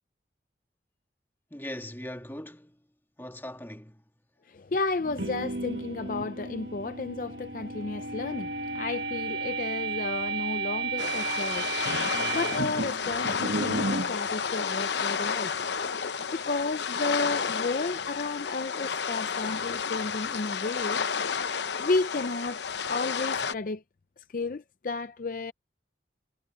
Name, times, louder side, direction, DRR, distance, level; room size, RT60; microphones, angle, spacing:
voice 1, 1.5-2.8 3.2-4.0, left 1 dB, 10° left, 1.7 m, -40 dB
voice 2, 4.5-11.7 12.1-15.6 16.3-21.0 21.8-22.6 22.9-23.8 24.3-25.5, left 3 dB, 45° left, 0.5 m, -32 dB
sound 1, 5.0-14.1, right 3 dB, 70° right, 1.6 m, -33 dB
sound 2, 11.0-23.5, left 6 dB, 75° left, 0.8 m, -31 dB
head